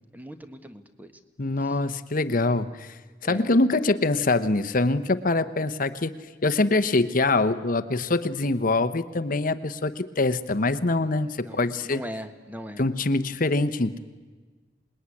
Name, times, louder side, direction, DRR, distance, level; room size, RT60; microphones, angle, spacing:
voice 1, 0.1-1.1 1.6-1.8 3.2-3.5 11.4-12.9, equal, 10° right, 9 dB, 1.4 m, -40 dB
voice 2, 1.4-2.9 3.2-6.2 6.4-12.0 12.8-14.0, left 2 dB, 45° left, 12 dB, 0.9 m, -24 dB
26.5 x 20.5 x 9.8 m, 1.3 s
head